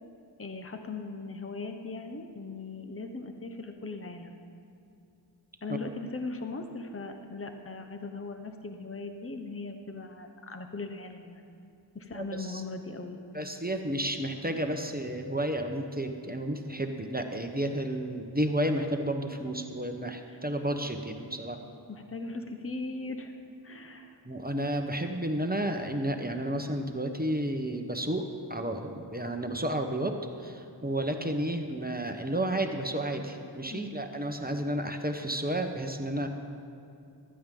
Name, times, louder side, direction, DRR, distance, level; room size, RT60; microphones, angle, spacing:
voice 1, 0.4-4.3 5.6-11.6 11.9-13.2 20.3-20.4 21.9-23.3 23.6-24.2 33.7-34.1, left 3 dB, 30° left, 6 dB, 0.9 m, -39 dB
voice 2, 12.1-12.6 13.3-21.6 24.2-36.3, right 1 dB, 20° right, 5 dB, 1.0 m, -32 dB
15.0 x 12.5 x 3.8 m, 2.7 s
wide cardioid pair, 40°, 44 cm